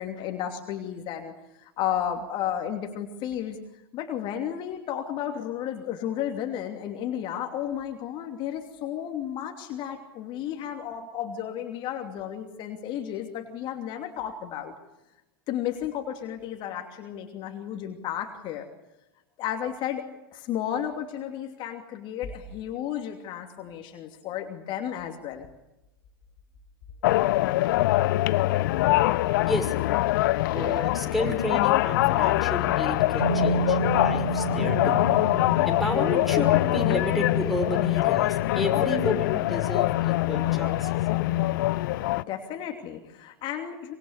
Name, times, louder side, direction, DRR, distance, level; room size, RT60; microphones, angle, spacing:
voice 1, 0.0-3.6 3.9-14.7 15.5-18.7 19.4-25.5 41.9-43.9, left 10 dB, 40° left, 4 dB, 2.9 m, -33 dB
sound 1, 27.0-42.2, left 17 dB, 60° left, 0.9 m, -24 dB
voice 2, 30.5-35.0 35.7-41.2, equal, ahead, 6 dB, 5.9 m, -32 dB
lofi guitar, 33.2-37.0, right 4 dB, 85° right, 3.7 m, -30 dB
25.0 x 24.0 x 8.3 m, 0.95 s
figure-of-eight pair, 90°, 12 cm